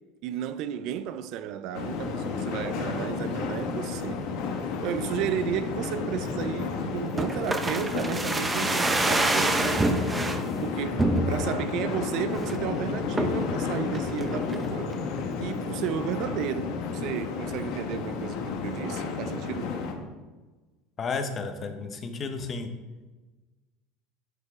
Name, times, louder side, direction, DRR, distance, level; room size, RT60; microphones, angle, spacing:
voice 1, 0.2-4.2 4.8-10.1 10.6-14.9 15.4-19.7, right 9 dB, 55° right, 0.4 m, -33 dB
sound 1, 1.7-19.9, left 5 dB, 65° left, 1.1 m, -32 dB
sound 2, 7.2-10.4 11.0-11.6 12.0-12.1 12.4-12.7 13.2-13.5 13.9-14.6 14.9-15.0, right 2 dB, 10° right, 0.6 m, -26 dB
voice 2, 21.0-22.7, left 4 dB, 30° left, 0.8 m, -32 dB
9.6 x 5.4 x 3.6 m
supercardioid pair, 135°, 0 cm